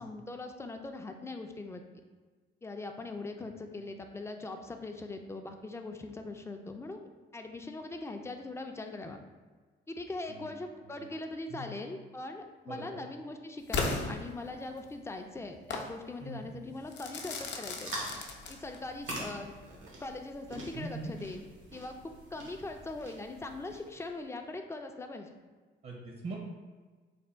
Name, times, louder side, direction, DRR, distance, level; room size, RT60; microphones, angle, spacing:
voice 1, 0.0-1.8 2.6-9.2 9.9-18.1 18.5-19.6 20.0-21.5 21.7-25.3, left 2 dB, 15° left, 5 dB, 0.4 m, -41 dB
voice 2, 12.7-13.1 16.2-16.5 20.7-21.1 25.8-26.4, right 2 dB, 50° right, -2 dB, 0.7 m, -42 dB
Crackle / Fireworks, 13.7-14.9 15.7-15.9 16.9-18.9, left 3 dB, 65° left, 0.6 m, -35 dB
sound 1, 17.7-24.0, right 1 dB, 80° right, 0.9 m, -45 dB
3.4 x 2.2 x 4.2 m, 1.4 s
cardioid pair, 90°, 20 cm